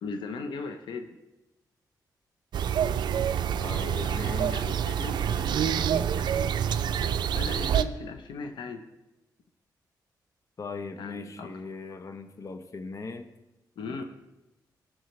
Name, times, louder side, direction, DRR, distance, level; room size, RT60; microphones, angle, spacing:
voice 1, 0.0-1.2 4.0-5.9 6.1-6.6 7.3-8.8 11.0-11.5 13.8-14.0, left 4 dB, 85° left, 6 dB, 0.8 m, -38 dB
sound 1, 2.5-7.8, right 9 dB, 75° right, 0.4 m, -27 dB
voice 2, 3.6-4.7 10.6-13.3 13.9-14.0, left 4 dB, 45° left, 8 dB, 0.8 m, -39 dB
17.0 x 6.2 x 3.2 m, 1.0 s
cardioid pair, 90°, 8 cm